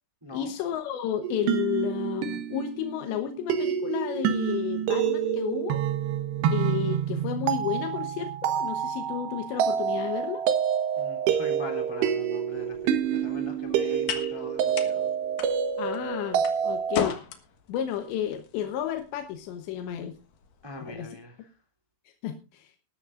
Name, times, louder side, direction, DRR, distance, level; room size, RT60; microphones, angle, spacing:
voice 1, 0.3-5.8 6.5-10.4 15.8-17.2 17.7-20.1 20.8-21.2 22.2-22.7, left 10 dB, 90° left, 6 dB, 3.4 m, -32 dB
sound 1, 1.2-17.1, right 8 dB, 75° right, 3.3 m, -28 dB
voice 2, 11.0-15.1 20.6-21.3, left 1 dB, 10° right, 3 dB, 2.2 m, -40 dB
sound 2, 12.5-20.9, left 8 dB, 60° left, 2.7 m, -39 dB
19.5 x 13.0 x 2.5 m, 0.32 s
omnidirectional pair, 4.9 m